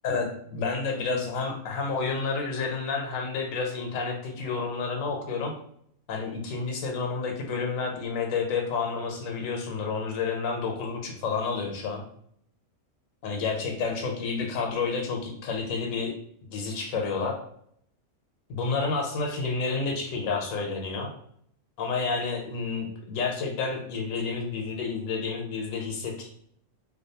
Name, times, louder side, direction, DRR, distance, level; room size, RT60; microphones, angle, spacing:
voice 1, 0.0-5.5 6.1-12.0 13.2-16.1 16.5-17.4 18.5-21.1 21.8-26.3, left 4 dB, 85° left, 2 dB, 1.0 m, -30 dB
2.5 x 2.2 x 2.7 m, 0.67 s
omnidirectional pair, 1.4 m